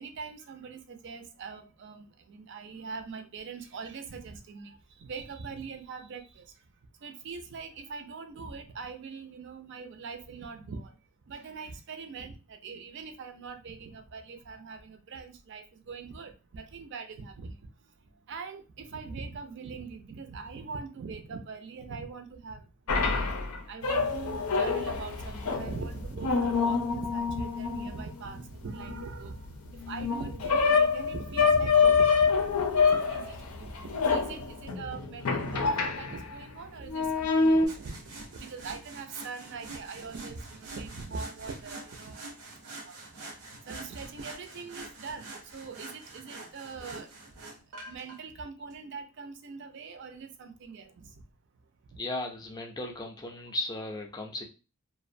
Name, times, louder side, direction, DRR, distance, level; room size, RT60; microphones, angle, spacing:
voice 1, 0.0-6.4 7.0-10.9 11.3-17.5 18.3-22.6 22.9-23.2 23.7-29.4 29.9-42.2 42.8-43.0 43.7-47.1 47.9-51.1, right 4 dB, 55° right, 7 dB, 0.4 m, -42 dB
sound 1, 22.9-36.4 36.9-37.7, left 5 dB, 80° left, 0.5 m, -26 dB
sound 2, 37.7-48.2 48.7-48.8, right 2 dB, 90° right, 0.7 m, -46 dB
voice 2, 52.0-54.4, left 2 dB, 15° left, 1 dB, 0.4 m, -36 dB
2.5 x 2.1 x 2.5 m, 0.31 s
head